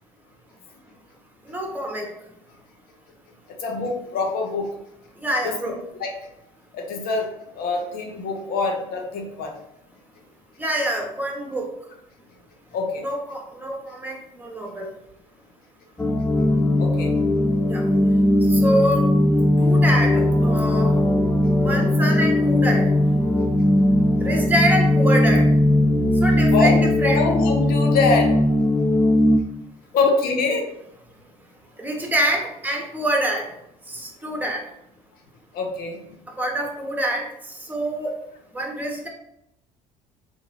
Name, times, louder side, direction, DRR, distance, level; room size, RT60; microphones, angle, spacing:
voice 1, 1.5-2.1 5.2-5.8 10.6-11.7 13.0-14.9 17.6-17.8 18.5-19.1 19.6-20.9 21.6-22.9 24.2-25.5 26.2-27.2 31.8-33.5 33.9-34.6 36.4-37.3 37.7-38.1 38.5-39.1, right 1 dB, 10° right, 0 dB, 1.1 m, -25 dB
voice 2, 3.6-4.7 5.4-6.1 6.7-9.5 12.7-13.1 16.8-17.1 26.5-28.4 29.9-30.6 35.5-36.0, left 3 dB, 60° left, 2 dB, 0.8 m, -24 dB
sound 1, 16.0-29.4, left 1 dB, 10° left, 0.4 m, -18 dB
3.5 x 2.6 x 3.3 m, 0.81 s
hypercardioid pair, 60°, 17 cm